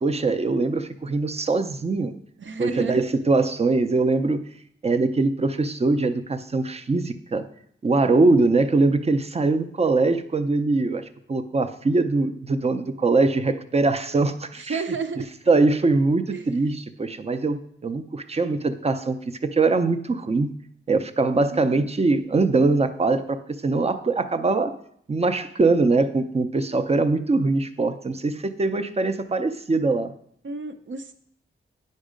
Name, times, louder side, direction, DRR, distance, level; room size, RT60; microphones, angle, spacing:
voice 1, 0.0-2.1 2.6-4.5 4.8-7.4 7.8-14.8 15.5-19.2 19.4-20.5 20.9-24.7 25.1-30.1, right 3 dB, 30° right, 10 dB, 0.5 m, -22 dB
voice 2, 2.4-3.0 14.6-15.3 16.3-16.5 21.5-21.9 30.4-31.1, right 4 dB, 65° right, 7 dB, 0.7 m, -31 dB
9.1 x 5.4 x 5.0 m, 0.68 s
wide cardioid pair, 140°, 21 cm